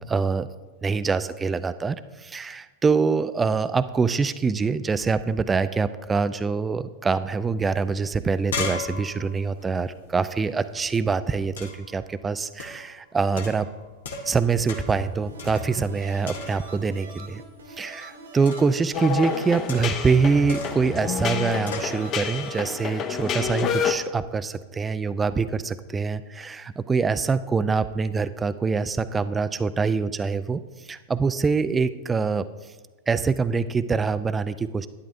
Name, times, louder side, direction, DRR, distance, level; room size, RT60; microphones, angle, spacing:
voice 1, 0.1-0.5 0.8-13.7 14.2-17.4 17.7-32.5 33.1-34.9, right 4 dB, 15° right, 13 dB, 0.4 m, -25 dB
sound 1, 7.7-7.8 8.1-10.8 11.6-11.9 12.6-12.9 13.4-14.4 14.7-15.0 15.4-16.0 16.2-16.8 18.4-18.8 19.7-20.1 20.5-20.9 21.7-22.0, left 3 dB, 75° left, 1.3 m, -35 dB
sound 2, 14.9-22.8, right 1 dB, 85° right, 1.8 m, -42 dB
sound 3, 18.9-23.9, left 7 dB, 35° left, 0.8 m, -28 dB
12.0 x 10.0 x 2.6 m, 1.3 s
hypercardioid pair, 95°, 0 cm